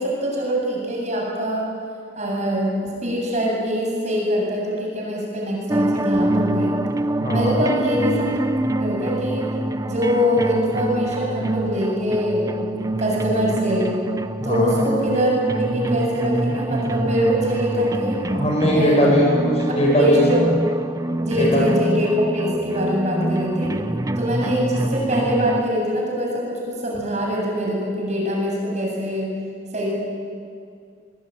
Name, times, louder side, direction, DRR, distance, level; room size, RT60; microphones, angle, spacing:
voice 1, 0.0-1.7 2.2-2.7 3.0-6.7 7.3-8.4 8.8-9.5 9.8-13.9 14.4-18.2 18.7-19.0 19.9-20.5 21.2-22.1 22.3-23.7 24.2-29.3 29.7-29.9, equal, 40° right, -2 dB, 7.5 m, -23 dB
sound 1, 5.7-25.6, right 1 dB, 20° right, 0.6 m, -25 dB
voice 2, 7.2-7.6 14.4-14.8 18.3-20.2 21.4-21.6, equal, 35° left, -1 dB, 7.4 m, -19 dB
23.5 x 23.0 x 9.2 m, 2.3 s
head